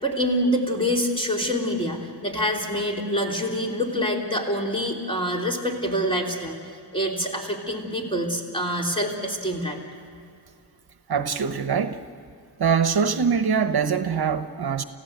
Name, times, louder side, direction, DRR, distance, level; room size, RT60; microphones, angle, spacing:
voice 1, 0.0-6.5 6.9-9.8, equal, 15° left, -1 dB, 3.4 m, -26 dB
voice 2, 11.1-12.0 12.6-14.8, right 6 dB, 65° right, 9 dB, 1.0 m, -23 dB
29.0 x 15.5 x 8.0 m, 2.5 s
wide cardioid pair, 110°, 41 cm